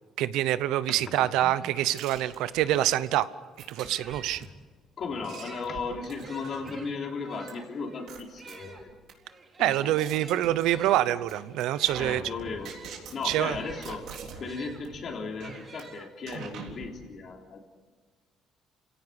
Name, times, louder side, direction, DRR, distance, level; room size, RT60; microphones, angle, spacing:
voice 1, 0.2-3.3 3.7-4.5 9.6-12.2 13.2-13.6, right 13 dB, 85° right, 15 dB, 0.8 m, -26 dB
sound 1, 1.3-4.5 5.2-14.8 15.4-16.5, right 3 dB, 25° right, 3.1 m, -50 dB
sound 2, 2.0-2.8 3.6-4.4 5.0-6.8 7.5-7.6 8.1-9.1 9.6-11.0 11.3-11.6 11.9-14.5 14.8-15.0 15.4-15.8 16.3-16.9, right 7 dB, 65° right, 3.9 m, -43 dB
voice 2, 5.0-8.9 9.6-10.2 12.0-12.8 13.1-17.6, left 4 dB, 40° left, 2 dB, 3.2 m, -36 dB
29.5 x 17.0 x 8.1 m, 1.4 s
cardioid pair, 155°, 0 cm